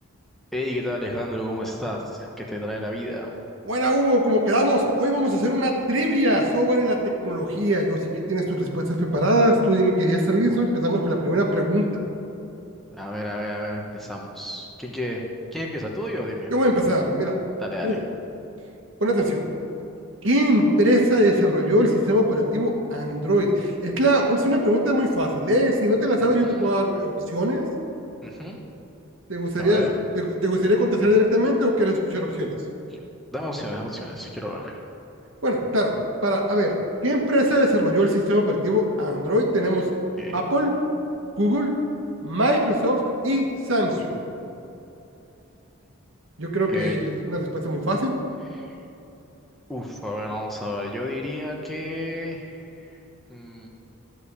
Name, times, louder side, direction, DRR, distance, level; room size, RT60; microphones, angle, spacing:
voice 1, 0.5-3.3 10.5-10.6 12.9-16.5 17.6-18.0 26.4-26.7 28.2-28.6 29.6-30.0 32.9-33.0 33.3-34.8 40.2-40.5 46.7-47.0 48.5-48.7 49.7-53.0 53.3-53.7, left 1 dB, ahead, -2 dB, 1.0 m, -31 dB
voice 2, 3.7-11.9 16.5-17.4 17.8-18.0 19.0-19.4 20.2-27.6 29.3-29.8 30.1-32.5 35.4-35.9 36.2-36.8 37.0-39.9 40.3-40.7 41.4-41.7 42.2-44.2 46.4-48.1, equal, 65° right, 0 dB, 1.6 m, -21 dB
13.0 x 4.9 x 8.5 m, 2.9 s
head